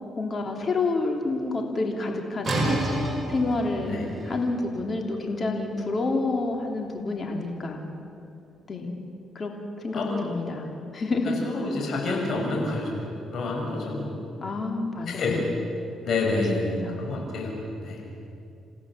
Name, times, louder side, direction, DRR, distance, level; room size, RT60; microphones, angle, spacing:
voice 1, 0.2-2.6 3.3-7.9 8.7-9.0 9.3-9.5 9.8-11.4 14.4-15.7 16.5-17.1, left 3 dB, 40° left, 2 dB, 3.1 m, -29 dB
sound 1, 2.4-8.1, right 1 dB, 30° right, 6.1 m, -32 dB
voice 2, 11.2-14.2 15.1-15.4 16.0-18.0, left 2 dB, 60° left, -1 dB, 6.3 m, -28 dB
28.5 x 15.5 x 7.5 m, 2.6 s
cardioid pair, 90°, 0 cm